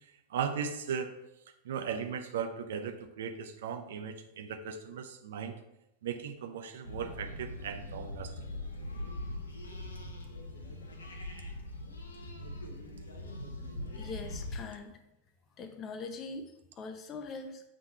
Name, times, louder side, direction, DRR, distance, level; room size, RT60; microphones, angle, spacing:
voice 1, 0.3-1.1 1.6-5.6 6.0-8.3, right 7 dB, 60° right, 7 dB, 0.7 m, -37 dB
sound 1, 6.8-14.6, left 1 dB, 70° left, 0.9 m, -41 dB
voice 2, 14.0-15.0 15.6-17.6, left 4 dB, 30° left, 7 dB, 0.8 m, -42 dB
7.3 x 3.7 x 4.4 m, 0.86 s
figure-of-eight pair, 90°, 0 cm